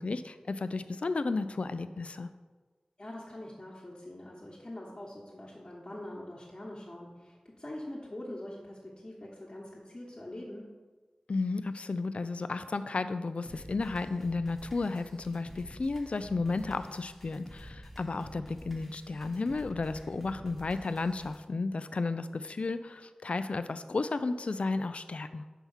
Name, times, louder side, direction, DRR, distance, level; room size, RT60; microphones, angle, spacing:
voice 1, 0.0-2.3 11.3-25.5, left 3 dB, 60° left, 11 dB, 0.3 m, -33 dB
voice 2, 3.0-10.7, left 1 dB, 35° left, -6 dB, 1.2 m, -44 dB
sound 1, 13.5-21.4, equal, 5° left, 1.0 m, -49 dB
5.6 x 4.6 x 5.6 m, 1.3 s
wide cardioid pair, 65°, 2 cm